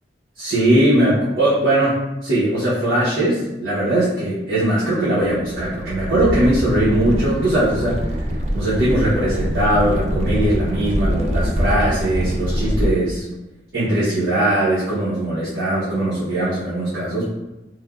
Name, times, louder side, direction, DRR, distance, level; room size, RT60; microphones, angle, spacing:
voice 1, 0.4-8.2 8.5-13.2 13.7-17.3, right 1 dB, 85° right, -11 dB, 0.8 m, -20 dB
sound 1, 5.2-12.9, equal, 40° right, 0.3 m, -24 dB
3.2 x 2.1 x 2.3 m, 1.0 s
head